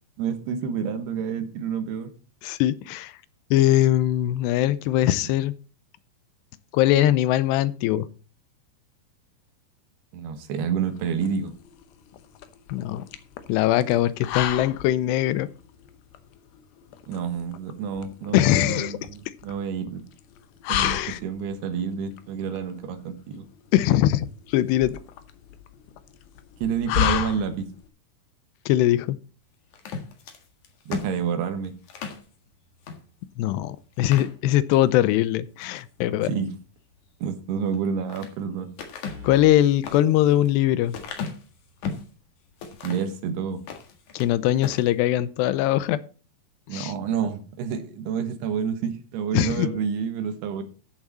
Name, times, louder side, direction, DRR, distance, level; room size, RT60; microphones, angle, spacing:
voice 1, 0.2-2.1 10.1-11.5 17.1-20.0 20.7-23.5 26.6-27.7 30.9-31.7 36.2-36.5 37.2-38.7 42.8-43.6 46.7-50.6, right 7 dB, 75° right, 8 dB, 3.3 m, -29 dB
voice 2, 2.4-3.1 3.5-5.5 6.7-8.1 12.7-13.0 13.5-15.5 18.3-19.0 20.8-21.2 23.7-24.9 28.7-29.2 33.4-36.3 39.2-41.0 44.1-46.0 46.7-46.9 49.3-49.7, left 13 dB, 90° left, 17 dB, 2.9 m, -21 dB
sound 1, 10.8-27.9, left 11 dB, 75° left, 2.6 m, -33 dB
sound 2, 29.7-32.3 32.8-33.0 33.4-33.5 33.9-34.9 35.4-35.8 37.6-38.3 38.8-42.1 42.6-43.2 43.6-44.3 44.6-44.9, left 5 dB, 55° left, 2.8 m, -36 dB
sound 3, 35.9-36.4 36.8-36.9 39.0-39.6, left 5 dB, 45° right, 1.9 m, -43 dB
14.0 x 7.4 x 4.1 m, 0.36 s
omnidirectional pair, 4.7 m